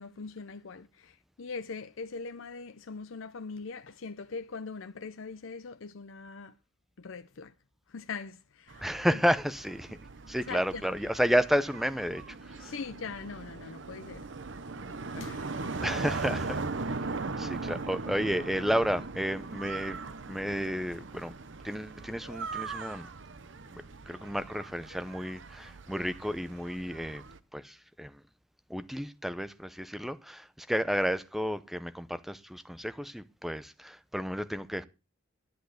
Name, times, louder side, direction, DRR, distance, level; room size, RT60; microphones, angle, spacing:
voice 1, 0.0-6.5 7.0-7.5 7.9-9.2 10.5-10.9 12.6-14.3 15.1-15.8, left 4 dB, 70° left, 0.6 m, -42 dB
sound 1, 8.7-27.4, right 3 dB, 60° right, 0.8 m, -39 dB
voice 2, 8.8-10.0 10.3-12.7 15.8-16.6 17.4-20.0 20.3-21.3 21.6-23.1 24.1-27.2 27.5-28.2 28.7-34.8, equal, ahead, 0.6 m, -31 dB
11.0 x 10.5 x 6.4 m
head